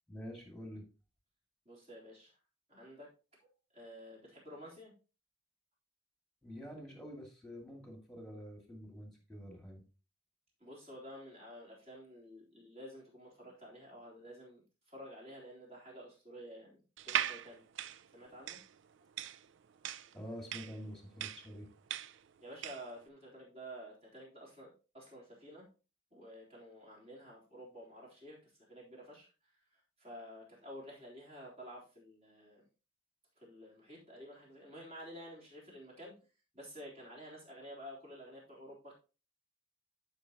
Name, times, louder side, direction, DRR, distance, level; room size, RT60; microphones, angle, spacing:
voice 1, 0.1-0.8 6.4-9.8 20.1-21.7, equal, ahead, 2 dB, 2.2 m, -47 dB
voice 2, 1.7-2.3 2.7-3.1 3.7-4.9 10.6-14.6 14.9-16.8 17.1-17.6 18.1-18.6 22.4-25.7 26.1-29.3 29.7-32.7 33.4-36.1 36.5-38.9, equal, 30° right, -4 dB, 3.6 m, -51 dB
sound 1, 17.0-22.9, right 11 dB, 70° right, 0.4 m, -39 dB
12.0 x 5.5 x 2.9 m, 0.33 s
head